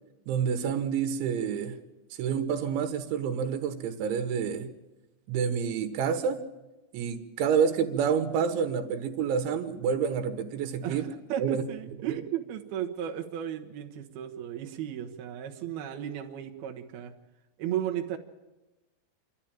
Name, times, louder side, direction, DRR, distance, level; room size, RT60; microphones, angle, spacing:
voice 1, 0.3-1.8 2.2-4.7 5.3-6.4 6.9-11.1 11.4-11.6, right 7 dB, 80° right, 7 dB, 3.8 m, -28 dB
voice 2, 10.8-17.1 17.6-18.2, right 10 dB, 65° right, 5 dB, 3.0 m, -35 dB
27.0 x 13.0 x 8.9 m, 1.1 s
omnidirectional pair, 5.3 m